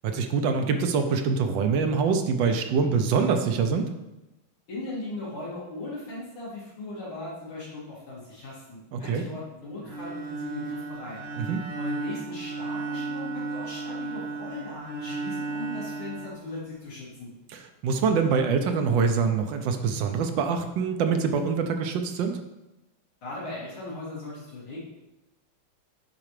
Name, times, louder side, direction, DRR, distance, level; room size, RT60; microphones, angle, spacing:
voice 1, 0.0-3.9 8.9-9.2 11.4-11.6 17.5-22.4, right 5 dB, 70° right, 6 dB, 1.3 m, -25 dB
voice 2, 4.7-11.2 11.8-17.3 23.2-24.8, left 2 dB, 75° left, -8 dB, 3.1 m, -38 dB
Bowed string instrument, 9.8-17.0, right 3 dB, 50° right, 0.8 m, -35 dB
8.8 x 4.3 x 3.2 m, 0.98 s
omnidirectional pair, 2.3 m